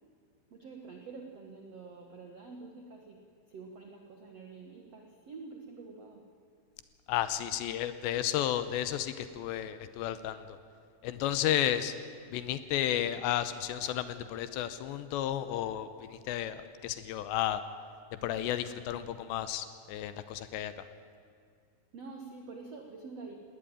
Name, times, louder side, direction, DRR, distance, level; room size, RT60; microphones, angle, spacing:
voice 1, 0.5-3.2 3.5-6.2 21.9-23.4, right 4 dB, 75° right, 3 dB, 1.5 m, -47 dB
voice 2, 7.1-10.4 11.0-11.9 12.3-17.6 18.2-20.8, left 11 dB, 80° left, 12 dB, 2.9 m, -32 dB
19.0 x 18.5 x 9.0 m, 2.3 s
omnidirectional pair, 5.4 m